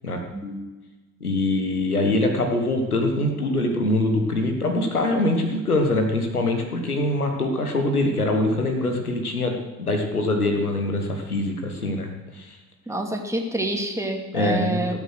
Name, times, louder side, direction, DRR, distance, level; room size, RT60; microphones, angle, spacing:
voice 1, 1.2-12.6 14.3-15.0, left 2 dB, 90° left, 4 dB, 1.4 m, -23 dB
voice 2, 12.9-15.0, right 2 dB, 5° right, 2 dB, 2.4 m, -27 dB
17.5 x 7.2 x 6.4 m, 1.2 s
figure-of-eight pair, 55°, 43 cm